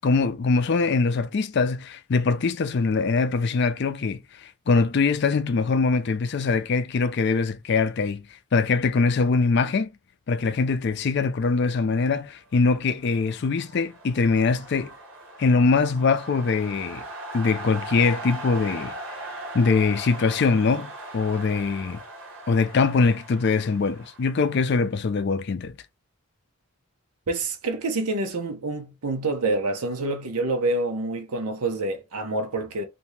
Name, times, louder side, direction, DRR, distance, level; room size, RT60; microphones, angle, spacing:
voice 1, 0.0-8.3 8.5-9.9 10.3-14.9 15.4-17.0 17.3-18.9 19.5-22.0 22.5-25.7, left 4 dB, 50° left, 0.4 m, -23 dB
sound 1, 12.9-24.8, right 1 dB, 55° right, 1.0 m, -39 dB
voice 2, 27.3-32.8, right 2 dB, 85° right, 0.8 m, -27 dB
2.8 x 2.6 x 3.2 m
head